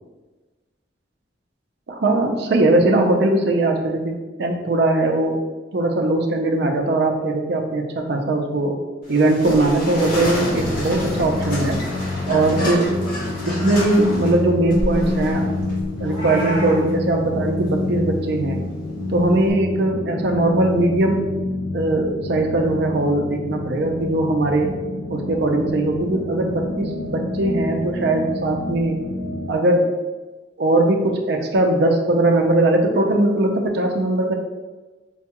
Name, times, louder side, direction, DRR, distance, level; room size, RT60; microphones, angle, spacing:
voice 1, 1.9-5.4 5.7-8.8 9.1-11.8 12.3-12.9 13.5-15.5 16.0-18.6 19.1-21.3 21.7-24.7 25.1-29.0 29.5-29.9 30.6-34.3, right 2 dB, 60° right, 3 dB, 0.5 m, -20 dB
sound 1, 9.0-19.5, left 1 dB, 50° left, 0.8 m, -31 dB
sound 2, 10.2-29.5, left 2 dB, 65° left, 0.4 m, -28 dB
Meow, 16.0-16.8, right 1 dB, 35° left, 1.2 m, -29 dB
4.5 x 2.2 x 2.9 m, 1.2 s
head